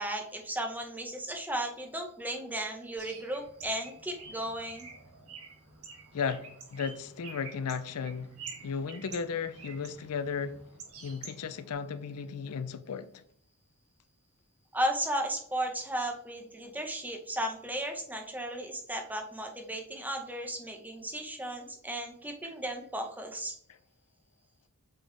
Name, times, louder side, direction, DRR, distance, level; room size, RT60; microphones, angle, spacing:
voice 1, 0.0-4.9 14.7-23.6, right 1 dB, 10° right, 0.9 m, -35 dB
Bird, 3.0-11.7, right 5 dB, 70° right, 1.7 m, -48 dB
voice 2, 6.1-8.3 8.6-10.6 11.0-13.1, left 6 dB, 85° left, 0.5 m, -35 dB
7.8 x 4.2 x 3.3 m
head